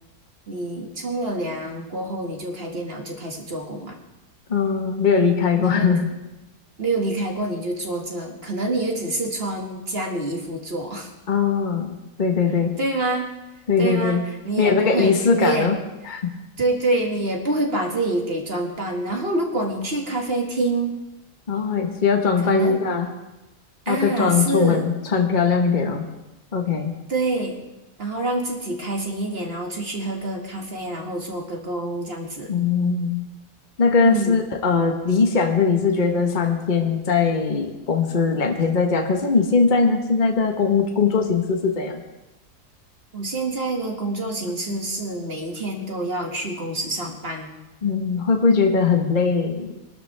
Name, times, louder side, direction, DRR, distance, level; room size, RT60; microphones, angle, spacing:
voice 1, 0.5-4.0 5.6-5.9 6.8-11.1 12.8-13.3 13.8-15.7 16.6-21.0 22.4-22.8 23.9-24.8 27.1-27.6 28.0-32.5 34.0-34.4 43.1-47.5, right 2 dB, 40° right, 1 dB, 2.2 m, -26 dB
voice 2, 4.5-6.1 11.3-12.7 13.7-14.2 14.6-15.7 16.1-16.3 21.5-23.1 23.9-26.0 26.5-26.9 32.5-33.2 33.8-42.0 44.7-44.8 47.8-49.8, left 5 dB, 35° left, 3 dB, 1.4 m, -20 dB
23.0 x 12.5 x 3.4 m, 1.0 s
omnidirectional pair, 1.6 m